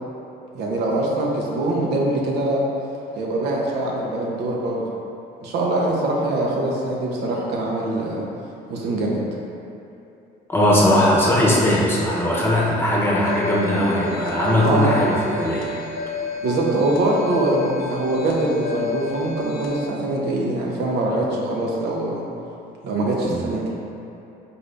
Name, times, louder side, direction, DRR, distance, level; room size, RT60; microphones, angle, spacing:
voice 1, 0.5-2.7 3.1-4.8 5.4-8.2 8.7-9.2 14.6-14.9 16.4-22.2 22.8-23.6, right 2 dB, 75° right, -2 dB, 0.7 m, -23 dB
voice 2, 10.5-15.7 23.3-23.4, left 1 dB, 15° left, -6 dB, 0.8 m, -19 dB
sound 1, 13.2-19.9, left 3 dB, 55° left, 0.6 m, -31 dB
3.9 x 2.6 x 3.3 m, 2.8 s
cardioid pair, 110°, 17 cm